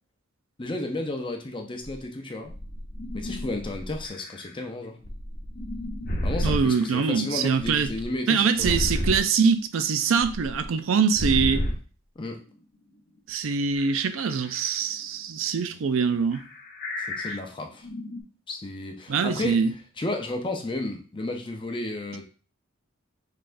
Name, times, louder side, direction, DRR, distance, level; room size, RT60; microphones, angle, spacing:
voice 1, 0.6-2.5 3.1-5.0 6.2-8.8 12.2-12.4 17.0-17.9 18.5-19.6 20.0-22.2, left 2 dB, 25° left, 0.5 m, -33 dB
sound 1, 2.0-2.1 2.5-4.5 5.0-7.1 7.6-9.2 10.2-10.7 11.1-11.8 12.5-12.6 13.8-14.8 16.3-17.4 17.7-18.2, equal, 45° left, 0.8 m, -32 dB
voice 2, 6.4-7.9 8.3-11.6 13.3-16.4 19.1-19.7, right 5 dB, 70° right, 0.4 m, -23 dB
5.5 x 3.3 x 2.6 m
head